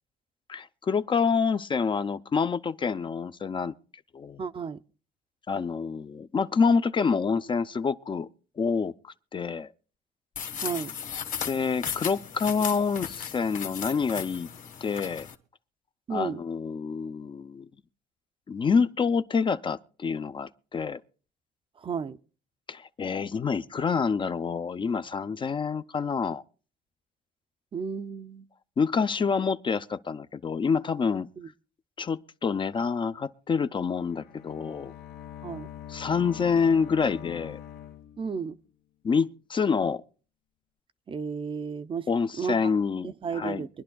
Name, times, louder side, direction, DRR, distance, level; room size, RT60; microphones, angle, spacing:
voice 1, 0.5-3.7 4.1-4.4 5.5-8.3 8.6-9.7 11.4-14.5 14.8-15.3 16.1-17.7 18.5-21.0 22.7-26.4 28.8-31.3 32.0-34.9 35.9-37.6 39.0-40.0 42.1-43.6, left 5 dB, 30° left, 0.5 m, -27 dB
voice 2, 4.4-4.8 10.6-10.9 16.1-16.4 21.8-22.2 27.7-28.5 31.4-31.5 35.4-35.7 38.2-38.6 41.1-42.1 42.4-42.7 43.0-43.7, right 6 dB, 30° right, 0.5 m, -33 dB
sound 1, 10.4-15.4, left 8 dB, 50° left, 1.4 m, -36 dB
Bowed string instrument, 34.0-38.7, left 10 dB, 70° left, 1.0 m, -44 dB
24.0 x 11.0 x 2.3 m
cardioid pair, 110°, 17 cm